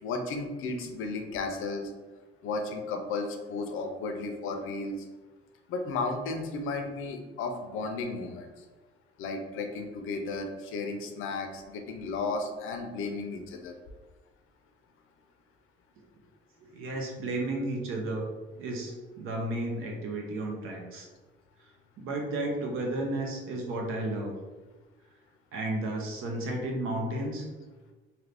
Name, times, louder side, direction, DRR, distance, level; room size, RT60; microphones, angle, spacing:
voice 1, 0.0-1.9 2.4-5.1 5.7-8.6 9.2-13.8, left 3 dB, 85° left, 5 dB, 0.5 m, -34 dB
voice 2, 16.6-18.3 18.6-21.1 22.0-24.4 25.5-27.4, right 1 dB, 90° right, 1 dB, 0.8 m, -33 dB
2.8 x 2.6 x 3.3 m, 1.2 s
cardioid pair, 145°, 21 cm